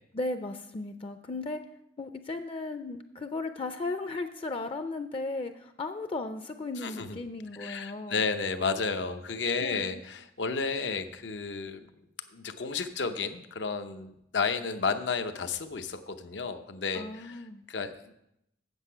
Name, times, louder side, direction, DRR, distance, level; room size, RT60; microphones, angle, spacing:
voice 1, 0.1-1.6 2.0-8.2 9.6-10.0 16.9-17.6, left 2 dB, 30° left, 8 dB, 0.4 m, -36 dB
voice 2, 6.8-7.2 7.6-11.9 12.3-18.1, left 4 dB, 90° left, 8 dB, 0.7 m, -32 dB
8.0 x 7.6 x 5.6 m, 0.81 s
head